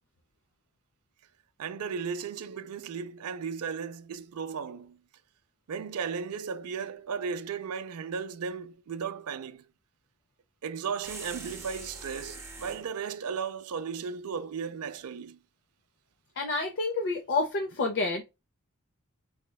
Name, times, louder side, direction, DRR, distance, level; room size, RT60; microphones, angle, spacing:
voice 1, 1.6-5.0 5.7-9.6 10.6-15.4, right 6 dB, 85° right, 0.4 m, -35 dB
sound 1, 11.0-12.9, right 3 dB, 10° right, 0.6 m, -43 dB
voice 2, 16.4-18.2, left 3 dB, 50° left, 0.6 m, -29 dB
4.9 x 2.1 x 2.2 m
head